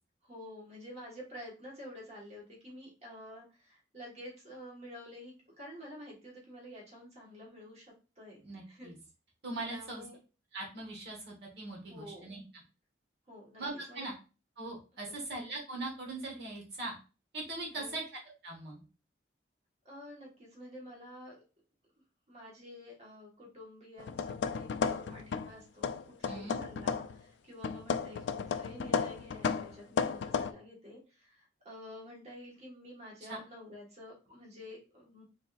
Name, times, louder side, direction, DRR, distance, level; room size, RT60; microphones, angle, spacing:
voice 1, 0.2-8.4 8.7-8.9 9.7-10.2 11.9-12.3 13.3-13.6 13.9-14.1 15.0-15.2 17.7-18.0 19.8-21.4 22.3-35.2, left 1 dB, 40° right, -3 dB, 1.3 m, -49 dB
voice 2, 8.4-9.0 9.4-10.0 10.5-12.4 13.6-14.1 14.6-17.0 17.3-18.0 18.4-18.8 26.3-26.6 33.2-33.4, right 2 dB, 65° right, -1 dB, 1.2 m, -40 dB
sound 1, 24.0-25.5 25.8-27.2 27.6-30.5, left 6 dB, 85° left, 0.3 m, -34 dB
4.0 x 3.3 x 2.4 m, 0.32 s
head